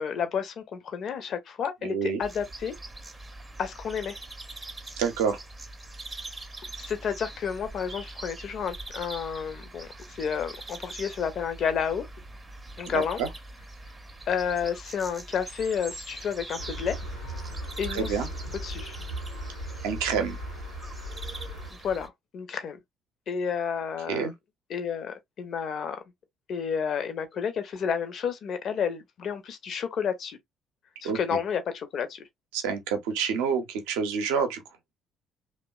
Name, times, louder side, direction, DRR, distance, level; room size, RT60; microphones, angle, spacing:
voice 1, 0.0-2.7 3.6-4.2 6.8-12.1 12.8-13.2 14.3-17.0 17.8-18.3 18.6-19.0 21.7-22.8 23.3-24.3 24.7-26.0 26.5-30.4 31.0-32.3, left 7 dB, 50° left, 0.5 m, -31 dB
voice 2, 1.8-2.2 5.0-5.4 12.9-13.3 17.9-18.3 19.8-20.4 24.1-24.3 31.0-31.4 32.5-34.6, right 6 dB, 65° right, 0.6 m, -28 dB
sound 1, 2.2-22.1, right 2 dB, 20° right, 0.6 m, -43 dB
sound 2, 16.6-21.7, right 1 dB, 90° left, 0.7 m, -37 dB
2.8 x 2.1 x 2.2 m
figure-of-eight pair, 50°, 0 cm